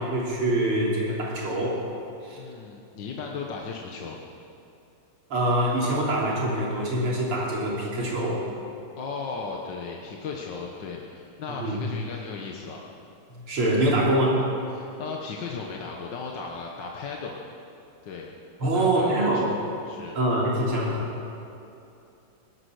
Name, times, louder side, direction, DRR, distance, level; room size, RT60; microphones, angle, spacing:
voice 1, 0.0-1.8 2.2-2.4 5.3-8.4 11.5-11.8 13.3-14.4 18.6-19.5 20.1-21.1, right 1 dB, 80° right, -3 dB, 3.9 m, -24 dB
voice 2, 2.3-4.2 9.0-12.8 14.7-17.4 18.0-18.3 18.6-19.5 19.9-20.2, left 4 dB, 60° left, -1 dB, 1.8 m, -36 dB
18.5 x 12.0 x 6.5 m, 2.8 s
omnidirectional pair, 2.4 m